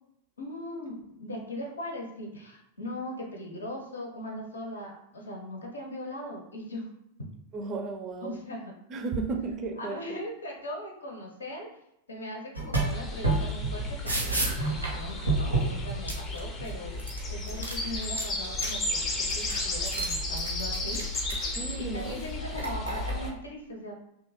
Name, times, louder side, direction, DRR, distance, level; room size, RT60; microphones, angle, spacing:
voice 1, 0.4-6.9 8.2-8.7 9.8-11.7 12.1-14.4 14.7-17.0 17.3-21.0 21.8-23.9, left 1 dB, 75° left, 0 dB, 0.6 m, -39 dB
voice 2, 7.5-8.4 8.9-10.0 21.6-22.2, right 4 dB, 30° right, 4 dB, 0.4 m, -34 dB
sound 1, 12.5-13.0 13.2-16.7 17.0-18.7 19.0-21.5 22.0-23.3, right 2 dB, 85° right, 0.7 m, -30 dB
sound 2, 12.7-23.3, left 2 dB, 25° left, 0.5 m, -34 dB
2.7 x 2.2 x 3.2 m, 0.82 s
figure-of-eight pair, 90°, 0 cm